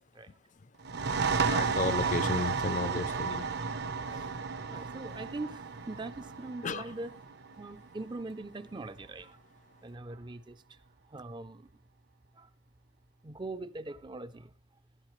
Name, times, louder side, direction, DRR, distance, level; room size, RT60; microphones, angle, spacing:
sound 1, 0.8-8.2, right 5 dB, 60° right, 0.9 m, -33 dB
voice 1, 1.5-3.4 6.6-6.9, left 3 dB, 40° left, 0.5 m, -33 dB
voice 2, 2.0-2.4 2.9-3.0 4.1-4.2 4.7-7.1 7.6-9.4 9.8-10.6 11.1-11.7 12.4-12.5 13.2-14.5, right 2 dB, 25° right, 0.5 m, -42 dB
15.0 x 12.5 x 3.2 m
head